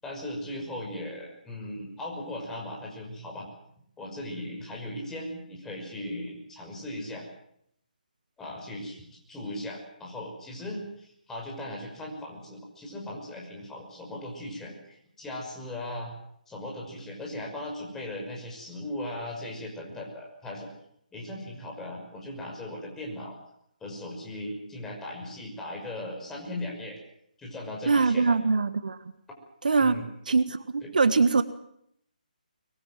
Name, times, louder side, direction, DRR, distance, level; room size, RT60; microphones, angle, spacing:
voice 1, 0.0-3.5 4.0-7.3 8.4-16.1 16.5-20.7 21.1-23.3 23.8-27.0 27.4-28.4 29.8-30.0 30.8-30.9, left 1 dB, 10° left, -1 dB, 5.9 m, -38 dB
voice 2, 27.9-29.0 29.6-31.4, right 4 dB, 65° right, 12 dB, 1.6 m, -23 dB
23.5 x 22.0 x 7.6 m, 0.73 s
figure-of-eight pair, 145°, 5 cm